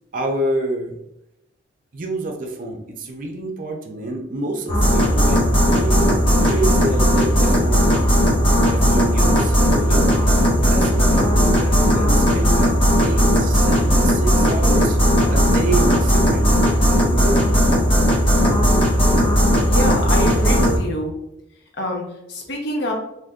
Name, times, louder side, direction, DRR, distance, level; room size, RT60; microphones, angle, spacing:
voice 1, 0.1-1.0 1.9-8.0 8.7-10.1 10.6-12.7 13.0-15.0 15.3-16.6 17.1-17.5, right 2 dB, 45° right, 2 dB, 0.5 m, -27 dB
sound 1, 4.7-20.8, equal, 30° left, 0.9 m, -16 dB
voice 2, 19.6-21.1 21.8-22.9, equal, 65° left, 0 dB, 0.8 m, -26 dB
2.7 x 2.6 x 3.5 m, 0.84 s
head